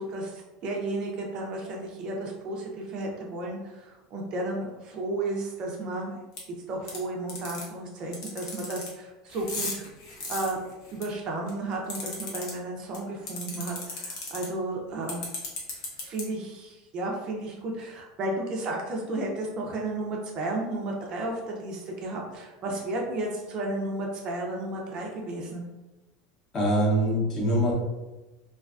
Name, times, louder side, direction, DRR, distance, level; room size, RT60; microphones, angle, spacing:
voice 1, 0.0-6.2 6.7-9.9 10.3-10.6 10.9-15.2 15.7-25.6, right 2 dB, 35° right, 0 dB, 0.4 m, -33 dB
sound 1, 6.4-6.5 6.9-7.0 7.3-7.6 8.1-8.9 9.3-11.0 11.5-12.5 12.9-13.0 13.3-14.4 15.1-16.2, left 4 dB, 80° left, 0.8 m, -34 dB
voice 2, 26.5-27.7, equal, 25° left, -3 dB, 0.7 m, -23 dB
2.3 x 2.2 x 2.3 m, 1.1 s
supercardioid pair, 150°, 2 cm